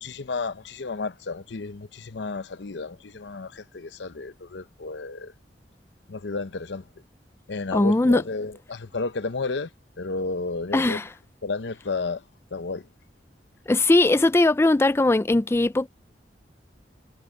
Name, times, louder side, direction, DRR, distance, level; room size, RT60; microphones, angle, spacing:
voice 1, 0.0-5.3 6.1-6.8 7.5-9.7 10.0-11.0 11.4-12.2 12.5-12.8, left 3 dB, 80° left, 0.8 m, -32 dB
voice 2, 7.7-8.3 10.7-11.1 13.7-15.9, left 2 dB, 15° left, 0.3 m, -20 dB
head